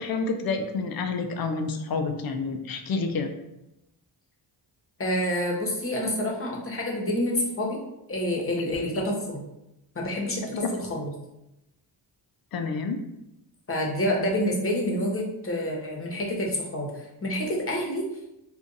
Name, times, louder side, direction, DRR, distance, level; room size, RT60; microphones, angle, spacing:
voice 1, 0.0-3.3 8.7-9.0 12.5-13.0, left 4 dB, 50° left, 6 dB, 0.5 m, -29 dB
voice 2, 5.0-7.8 8.1-9.4 9.9-10.6 10.9-11.1 13.7-16.9 17.2-18.1, left 1 dB, 25° left, -2 dB, 1.0 m, -28 dB
2.5 x 2.5 x 3.9 m, 0.89 s
cardioid pair, 65°, 48 cm